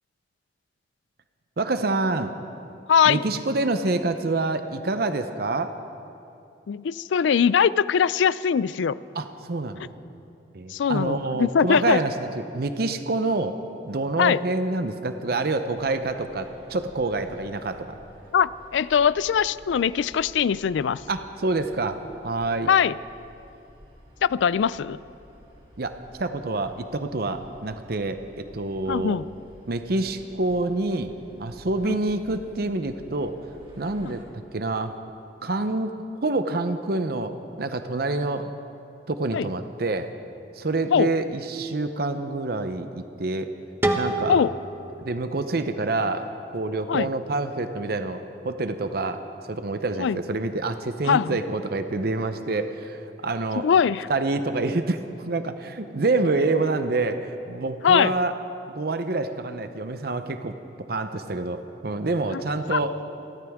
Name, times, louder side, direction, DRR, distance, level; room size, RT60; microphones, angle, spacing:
voice 1, 1.6-2.3 3.1-5.7 9.1-9.9 10.5-13.6 13.8-18.0 21.1-22.7 25.8-29.2 29.7-31.1 31.4-33.4 33.8-34.2 34.5-35.0 35.4-35.9 36.2-38.5 39.1-40.1 40.5-43.5 43.9-44.5 45.0-53.7 54.1-58.3 58.7-60.5 60.9-63.0, right 2 dB, 55° right, 9 dB, 0.7 m, -27 dB
voice 2, 2.9-3.2 6.7-9.0 10.7-12.0 14.2-14.4 18.3-21.0 22.7-22.9 24.2-25.0 28.9-29.3 31.8-32.0 39.3-39.5 40.9-41.1 44.3-44.5 46.9-47.1 50.0-50.2 51.1-51.4 53.6-54.1 57.8-58.1 62.3-62.4 62.7-62.8, left 7 dB, 85° left, 18 dB, 0.4 m, -21 dB
sound 1, 15.7-34.2, equal, 35° right, 2.6 m, -51 dB
sound 2, 43.8-46.7, right 1 dB, 10° right, 0.9 m, -30 dB
29.0 x 13.0 x 3.6 m, 2.6 s
head